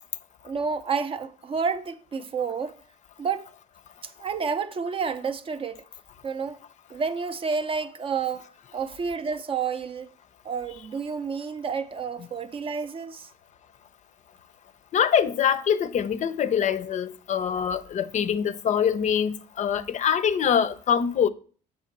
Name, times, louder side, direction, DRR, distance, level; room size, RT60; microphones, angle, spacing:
voice 1, 0.4-2.8 3.2-3.5 4.0-5.8 6.2-6.6 6.9-10.1 10.4-13.3, right 5 dB, 30° right, 0.4 m, -30 dB
voice 2, 14.9-21.3, left 8 dB, 45° left, 0.5 m, -24 dB
7.4 x 3.2 x 5.8 m
cardioid pair, 110°, 17 cm